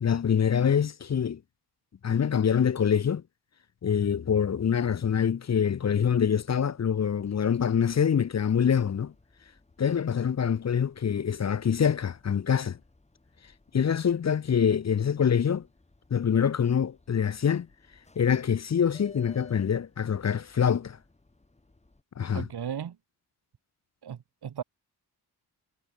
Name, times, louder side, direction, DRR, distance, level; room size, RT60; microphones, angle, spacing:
voice 1, 0.0-1.4 2.0-3.2 3.8-9.1 9.8-12.8 13.7-15.7 16.1-17.7 18.2-21.0 22.2-22.5, left 7 dB, 45° left, 0.6 m, -25 dB
sound 1, 5.8-22.0, left 2 dB, 15° left, 3.5 m, -59 dB
voice 2, 22.3-22.9 24.0-24.6, right 8 dB, 75° right, 1.6 m, -36 dB
wide cardioid pair, 175°, 39 cm